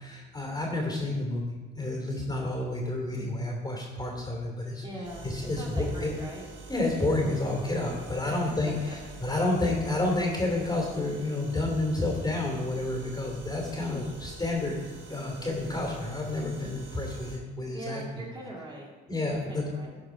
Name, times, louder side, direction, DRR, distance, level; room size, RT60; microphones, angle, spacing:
voice 1, 0.1-4.8 5.2-6.1 6.7-8.7 9.2-14.8 15.1-18.3 19.1-19.7, left 2 dB, 20° left, 0 dB, 2.8 m, -30 dB
voice 2, 4.8-5.3 5.6-6.5 8.2-9.0 9.3-9.5 17.7-18.9 19.3-20.0, right 1 dB, 25° right, -4 dB, 2.3 m, -41 dB
sound 1, 5.0-17.4, right 4 dB, 75° right, 2.4 m, -46 dB
12.5 x 4.8 x 4.9 m, 1.3 s
cardioid pair, 90°, 20 cm